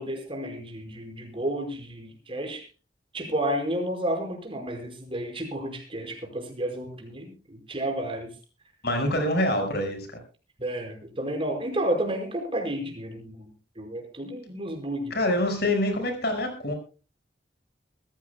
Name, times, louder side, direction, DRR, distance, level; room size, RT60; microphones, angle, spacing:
voice 1, 0.0-2.6 3.1-8.3 10.6-13.5 13.8-15.2, right 1 dB, 30° right, 3 dB, 5.2 m, -31 dB
voice 2, 8.8-10.1 15.1-16.7, left 1 dB, 60° left, 6 dB, 5.6 m, -25 dB
24.0 x 15.0 x 2.3 m, 0.34 s
head